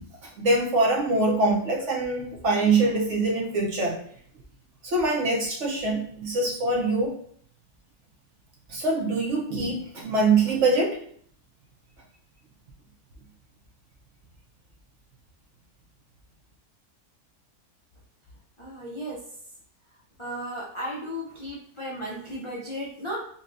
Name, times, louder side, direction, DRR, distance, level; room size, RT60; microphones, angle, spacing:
voice 1, 0.0-4.0 4.8-7.2 8.7-11.0, right 3 dB, 60° right, -1 dB, 0.8 m, -24 dB
voice 2, 18.6-19.2 20.2-23.2, equal, 55° left, -6 dB, 0.3 m, -35 dB
5.3 x 2.3 x 2.5 m, 0.62 s
omnidirectional pair, 1.7 m